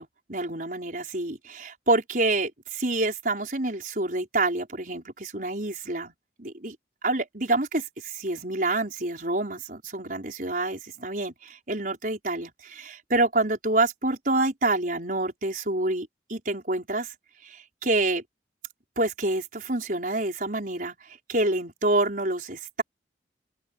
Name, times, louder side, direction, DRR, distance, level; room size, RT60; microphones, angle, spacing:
voice 1, 0.0-6.1 6.4-6.8 7.0-17.1 17.4-18.2 19.0-22.8, right 2 dB, 50° right, 5.4 m, -27 dB
open air
head